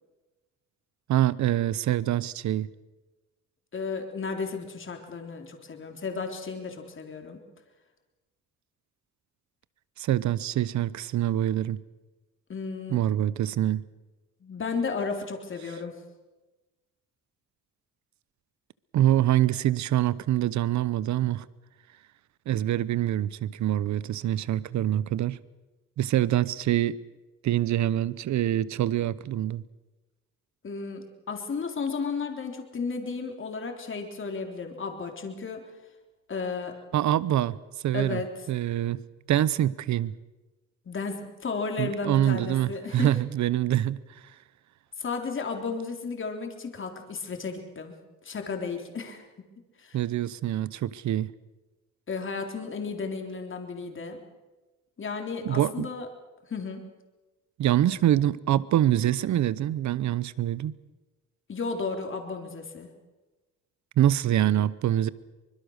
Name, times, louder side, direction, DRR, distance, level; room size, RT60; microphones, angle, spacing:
voice 1, 1.1-2.7 10.0-11.8 12.9-13.8 18.9-21.4 22.5-25.4 26.0-27.0 27.4-29.6 36.9-37.6 37.8-38.2 38.5-39.0 39.3-40.1 41.8-44.0 49.9-51.3 55.4-55.9 57.6-60.7 64.0-65.1, right 12 dB, 70° right, 0.9 m, -25 dB
voice 2, 3.7-7.4 12.5-13.0 14.4-16.0 30.6-35.6 36.3-36.8 37.9-38.3 40.9-43.2 45.0-47.9 48.2-49.2 49.8-50.0 52.1-54.2 55.0-56.1 56.5-56.8 61.5-62.9, left 4 dB, 40° left, 3.7 m, -33 dB
24.0 x 21.5 x 6.5 m
cardioid pair, 90°, 30 cm